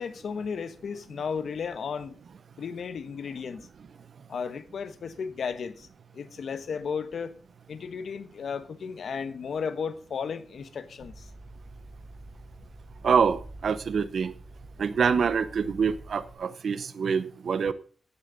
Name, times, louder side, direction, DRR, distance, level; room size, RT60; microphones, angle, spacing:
voice 1, 0.0-2.2 2.6-3.7 4.3-5.9 6.1-7.3 7.7-11.3, left 6 dB, 75° left, 1.1 m, -34 dB
sound 1, 11.0-16.3, right 1 dB, ahead, 2.2 m, -47 dB
voice 2, 13.0-14.3 14.8-17.7, right 6 dB, 70° right, 0.8 m, -25 dB
15.0 x 8.5 x 4.0 m
wide cardioid pair, 135°, 0 cm